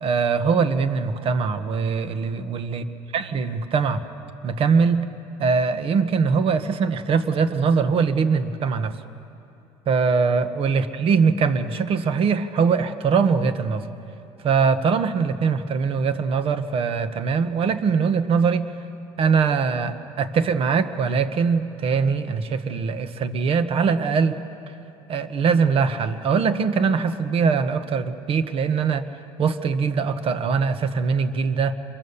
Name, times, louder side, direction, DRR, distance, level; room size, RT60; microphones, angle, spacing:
voice 1, 0.0-2.8 3.1-4.0 4.4-5.1 5.4-9.0 9.9-13.9 14.4-18.7 19.2-24.4 25.1-29.1 29.4-31.8, right 5 dB, 50° right, 11 dB, 1.4 m, -22 dB
27.0 x 23.5 x 7.2 m, 2.7 s
supercardioid pair, 95°, 12 cm